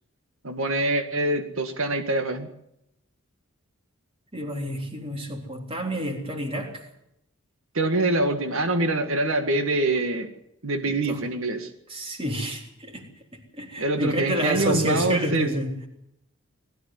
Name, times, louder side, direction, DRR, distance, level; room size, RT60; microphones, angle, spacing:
voice 1, 0.4-2.5 7.7-10.3 10.6-11.7 13.8-15.5, right 2 dB, 70° right, 1.9 m, -25 dB
voice 2, 4.3-6.8 10.9-11.2 11.9-15.9, equal, 25° right, 3.5 m, -29 dB
20.5 x 14.0 x 9.7 m
head